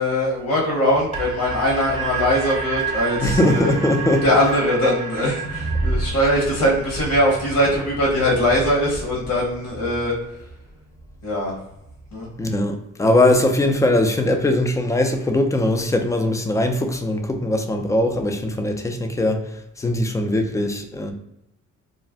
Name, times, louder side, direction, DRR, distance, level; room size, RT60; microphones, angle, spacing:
voice 1, 0.0-3.7 4.2-10.1 11.2-11.6 12.1-12.3, equal, 75° left, 1.0 m, -21 dB
sound 1, 0.9-11.5 11.8-11.9, right 3 dB, 20° right, 0.8 m, -30 dB
voice 2, 3.2-4.2 12.4-21.1, left 1 dB, 10° left, 0.3 m, -20 dB
2.4 x 2.1 x 3.4 m
cardioid pair, 90°, 30 cm